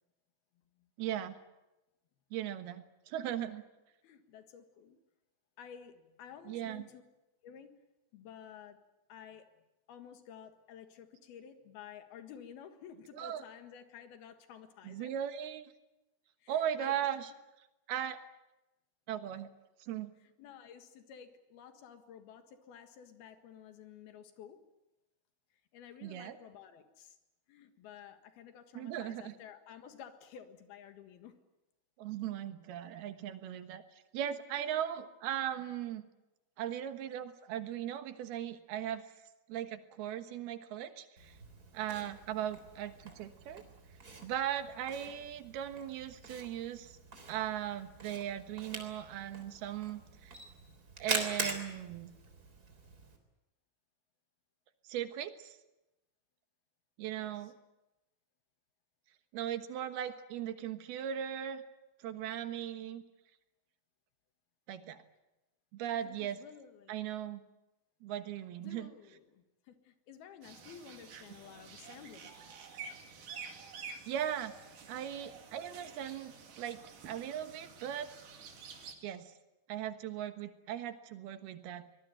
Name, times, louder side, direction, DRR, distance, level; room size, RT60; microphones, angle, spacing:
voice 1, 1.0-1.4 2.3-3.6 6.5-6.9 13.2-13.4 14.8-15.7 16.5-17.3 17.9-18.2 19.1-19.5 19.8-20.1 26.0-26.4 28.7-29.3 32.0-36.0 36.6-39.0 39.5-41.4 41.7-43.6 44.2-47.0 47.3-50.4 51.0-52.1 54.8-55.6 57.0-57.5 59.3-61.6 62.0-63.0 64.7-65.0 65.7-66.4 66.9-67.4 68.0-68.9 71.1-71.2 74.1-74.5 74.9-78.1 79.0-79.3 79.7-81.8, right 10 dB, 85° right, 9 dB, 3.3 m, -38 dB
voice 2, 4.0-5.0 5.6-7.0 7.4-7.8 8.1-8.8 9.1-9.5 9.9-15.2 16.4-17.0 20.2-24.7 25.7-27.2 27.5-31.4 57.2-57.5 65.9-67.2 68.6-72.4, left 8 dB, 85° left, 8 dB, 3.6 m, -53 dB
Camera, 41.2-53.2, right 3 dB, 25° right, 3.7 m, -44 dB
sound 1, 70.4-78.9, right 5 dB, 60° right, 3.8 m, -50 dB
24.5 x 20.0 x 9.2 m, 0.99 s
omnidirectional pair, 4.4 m